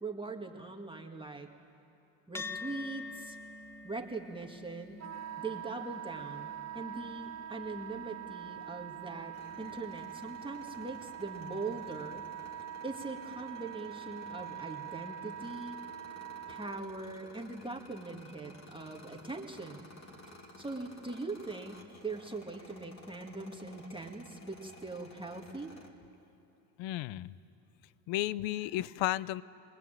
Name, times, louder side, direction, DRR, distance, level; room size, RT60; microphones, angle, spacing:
voice 1, 0.0-1.5 2.3-3.4 3.8-5.1 5.4-12.3 12.8-15.8 16.5-19.9 20.6-25.7, right 3 dB, 10° right, 1 dB, 2.0 m, -41 dB
sound 1, 2.3-11.0, left 3 dB, 5° left, 0.7 m, -48 dB
Wind instrument woodwind instrument, 5.0-16.8, right 9 dB, 35° right, 0.8 m, -44 dB
sound 2, 9.3-25.9, left 2 dB, 35° left, 3.1 m, -55 dB
voice 2, 26.8-27.3 28.1-29.4, left 15 dB, 70° left, 20 dB, 0.7 m, -33 dB
22.0 x 20.0 x 9.0 m, 2.8 s
supercardioid pair, 90°, 48 cm